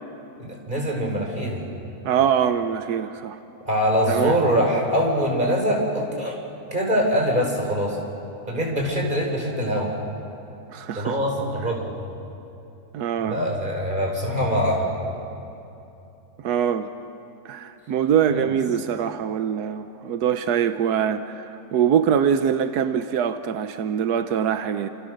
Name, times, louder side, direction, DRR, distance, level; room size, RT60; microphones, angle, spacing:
voice 1, 0.4-1.6 3.6-6.4 6.7-8.0 8.5-9.9 10.9-12.0 13.2-14.9 18.3-18.5, equal, 30° right, -1 dB, 5.1 m, -23 dB
voice 2, 2.0-3.4 4.1-4.4 10.7-11.2 12.9-13.4 16.4-16.9 17.4-24.9, right 8 dB, 90° right, 9 dB, 1.3 m, -23 dB
29.0 x 27.5 x 6.5 m, 2.9 s
omnidirectional pair, 1.6 m